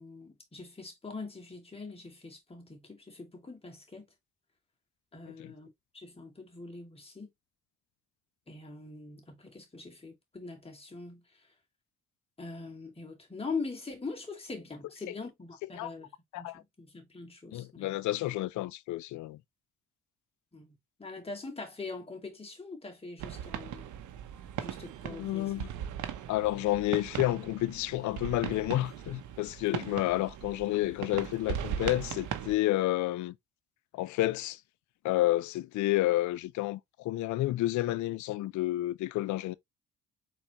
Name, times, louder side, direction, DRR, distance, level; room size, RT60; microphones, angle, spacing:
voice 1, 0.0-4.1 5.1-5.7 5.9-7.3 8.5-11.5 12.4-16.1 16.3-17.9 20.5-23.9 24.6-25.6, left 4 dB, 20° left, 2.2 m, -42 dB
voice 2, 17.5-19.4 25.1-25.7 26.3-33.3 33.9-34.6 35.0-39.5, left 16 dB, 75° left, 0.4 m, -30 dB
sound 1, 23.2-32.6, right 9 dB, 80° right, 0.8 m, -39 dB
4.4 x 4.0 x 2.9 m
cardioid pair, 90°, 30 cm